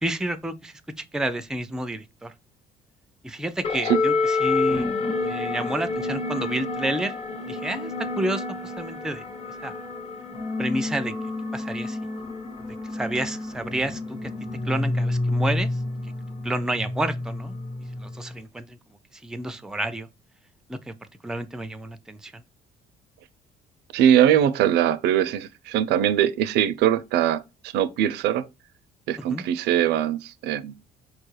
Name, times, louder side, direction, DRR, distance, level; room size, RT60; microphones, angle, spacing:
voice 1, 0.0-2.3 3.2-4.9 5.2-7.1 7.4-9.2 9.6-9.7 10.6-11.1 11.5-12.0 12.9-14.3 14.6-15.7 16.4-17.5 18.0-18.8 19.2-20.1 20.7-20.9 21.2-22.4 29.3-29.4, right 1 dB, 5° right, 0.4 m, -30 dB
sound 1, 3.6-18.4, left 3 dB, 35° left, 1.0 m, -29 dB
voice 2, 23.9-28.5 29.1-30.7, right 10 dB, 80° right, 0.4 m, -21 dB
4.6 x 2.2 x 3.1 m
cardioid pair, 110°, 17 cm